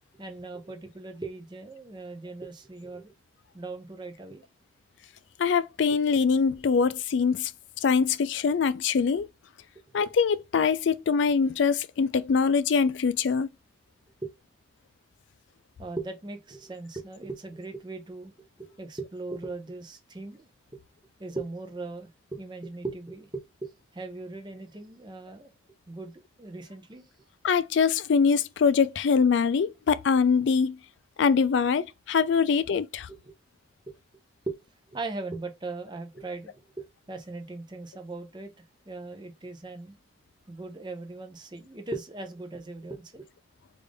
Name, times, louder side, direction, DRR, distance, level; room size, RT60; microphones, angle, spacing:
voice 1, 0.2-3.1 3.5-4.4 14.2-14.3 15.8-20.8 21.2-25.5 25.9-27.1 33.1-33.4 33.9-34.0 34.5-34.6 34.9-36.5 36.8-38.5 38.9-39.9 40.5-43.3, right 3 dB, 25° right, 0.6 m, -39 dB
voice 2, 5.4-7.5 7.8-9.3 9.9-13.5 27.4-30.8 31.2-33.1, left 5 dB, 70° left, 0.4 m, -23 dB
3.3 x 2.5 x 3.4 m
head